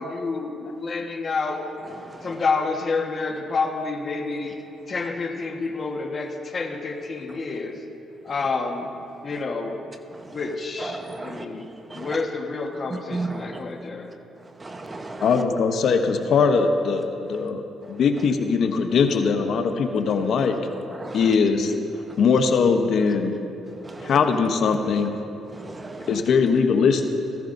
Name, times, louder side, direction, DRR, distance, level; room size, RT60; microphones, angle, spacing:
voice 1, 0.0-1.6 2.2-4.6 4.9-7.8 8.2-8.9 9.2-9.8 10.3-11.7 11.9-14.1, left 4 dB, 40° left, 3 dB, 1.3 m, -28 dB
voice 2, 1.9-2.4 10.1-10.4 10.8-11.5 11.9-12.1 12.9-13.6 14.6-15.4 20.9-21.4 22.1-22.2 23.8-24.2 25.5-26.2, right 2 dB, 25° right, 6 dB, 0.8 m, -35 dB
voice 3, 15.2-17.6 17.9-20.6 21.1-21.7 22.2-23.4 24.0-25.1 26.1-27.1, left 5 dB, 65° left, 6 dB, 0.8 m, -21 dB
15.5 x 15.5 x 2.6 m, 3.0 s
cardioid pair, 90°, 0 cm